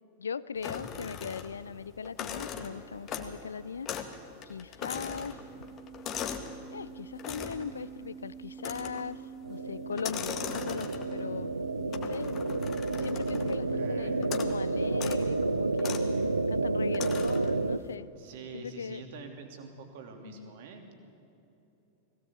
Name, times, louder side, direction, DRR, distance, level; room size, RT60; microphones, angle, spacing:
voice 1, 0.2-3.9 4.4-5.4 6.7-9.2 9.5-11.5 11.9-12.6 13.0-15.9 16.5-18.1 18.5-19.0 20.2-20.5, left 6 dB, 70° left, 19 dB, 0.5 m, -39 dB
sound 1, 0.6-1.7 2.0-3.5 3.9-4.2 4.4-6.6 7.2-7.7 8.6-9.1 9.9-11.2 11.9-13.6 14.2-14.6 14.9-15.2 15.8-16.1 16.9-17.5, left 8 dB, 30° left, 1.8 m, -39 dB
sound 2, 5.0-14.6, right 6 dB, 20° right, 1.8 m, -46 dB
sound 3, 9.4-17.8, right 3 dB, 80° right, 0.6 m, -30 dB
voice 2, 13.7-14.2 18.2-20.9, right 5 dB, 50° right, 4 dB, 3.0 m, -45 dB
20.5 x 17.0 x 8.7 m, 2.9 s
figure-of-eight pair, 90°, 0 cm